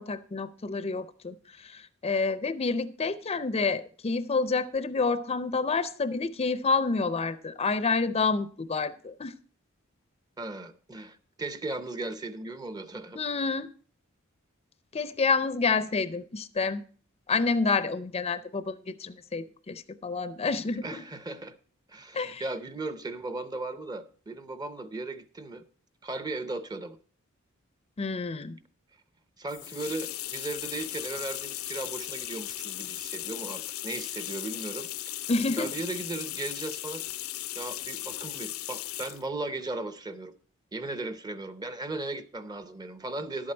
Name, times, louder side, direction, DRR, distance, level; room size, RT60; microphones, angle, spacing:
voice 1, 0.0-9.3 13.2-13.7 14.9-16.8 17.3-21.0 22.1-22.4 28.0-28.6 35.3-35.7, left 4 dB, 30° left, 0.5 m, -28 dB
voice 2, 10.4-13.2 20.8-21.5 21.9-25.6 26.0-27.0 29.4-34.9 35.6-37.0 37.6-40.3 40.7-43.5, right 2 dB, 20° right, 0.6 m, -36 dB
sound 1, 29.5-39.3, left 14 dB, 85° left, 0.6 m, -37 dB
11.5 x 8.6 x 4.4 m
head